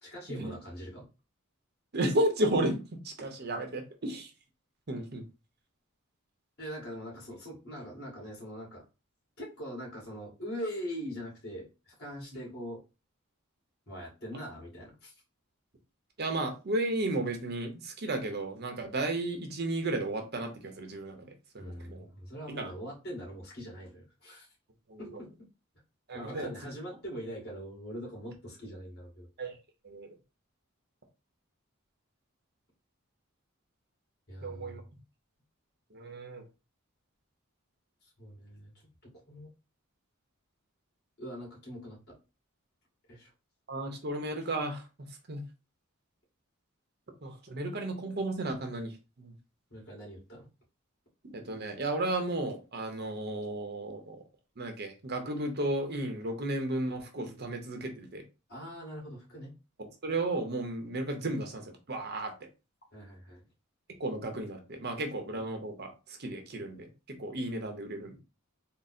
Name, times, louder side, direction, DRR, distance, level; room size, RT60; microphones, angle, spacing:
voice 1, 0.0-1.1 6.6-8.8 9.4-12.8 13.9-15.1 21.6-24.5 25.0-25.3 26.1-29.3 34.3-34.9 38.0-38.7 39.3-39.5 41.2-42.2 43.1-43.3 49.7-50.5 58.5-59.5 62.9-63.4, equal, 50° left, 2.0 m, -42 dB
voice 2, 1.9-4.3 4.9-5.2 16.2-22.1 22.5-22.7 24.9-25.2 26.1-26.5 29.4-29.5 29.8-30.2 34.4-34.8 35.9-36.4 43.7-44.8 45.3-45.4 47.2-49.3 51.3-54.2 54.6-58.2 59.8-62.3 63.9-66.9 67.2-68.2, right 1 dB, 50° right, 0.7 m, -34 dB
3.7 x 2.0 x 4.2 m
head